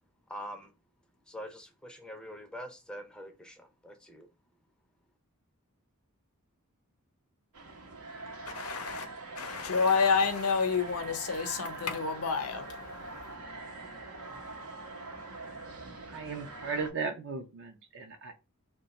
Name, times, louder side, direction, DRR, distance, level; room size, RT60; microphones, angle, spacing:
voice 1, 0.3-0.7 1.3-4.3, equal, 5° left, 0.4 m, -44 dB
sound 1, 7.5-16.9, right 2 dB, 90° right, 0.8 m, -43 dB
voice 2, 8.5-9.1 9.4-13.3, left 5 dB, 80° left, 0.6 m, -29 dB
voice 3, 16.1-18.3, right 4 dB, 55° right, 0.5 m, -36 dB
2.8 x 2.2 x 4.0 m
head